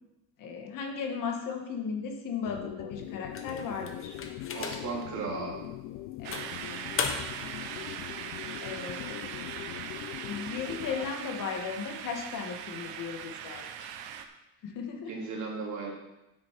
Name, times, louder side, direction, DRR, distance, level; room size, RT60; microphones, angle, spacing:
voice 1, 0.4-4.2 6.2-6.5 8.6-9.4 10.2-14.0 14.6-15.1, left 6 dB, 55° left, 3 dB, 1.7 m, -36 dB
sound 1, 2.4-11.2, left 15 dB, 70° left, 0.5 m, -42 dB
sound 2, 3.3-5.1 5.6-5.7 6.3-7.5, left 5 dB, 35° left, 1.1 m, -36 dB
voice 2, 4.5-5.6 15.1-15.9, right 4 dB, 45° right, -2 dB, 3.1 m, -35 dB
sound 3, 6.2-14.3, right 8 dB, 70° right, 1.0 m, -40 dB
9.4 x 8.3 x 4.7 m, 0.96 s
cardioid pair, 140°, 39 cm